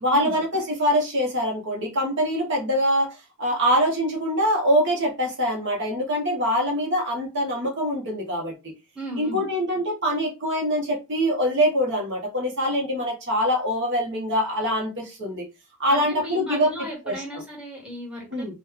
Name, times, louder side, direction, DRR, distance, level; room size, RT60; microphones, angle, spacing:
voice 1, 0.0-8.5 9.2-15.5 15.8-17.4 18.3-18.5, equal, 55° right, -1 dB, 0.9 m, -24 dB
voice 2, 8.9-9.4 15.9-18.6, right 1 dB, 5° right, -4 dB, 1.1 m, -35 dB
3.0 x 2.2 x 3.6 m, 0.27 s
head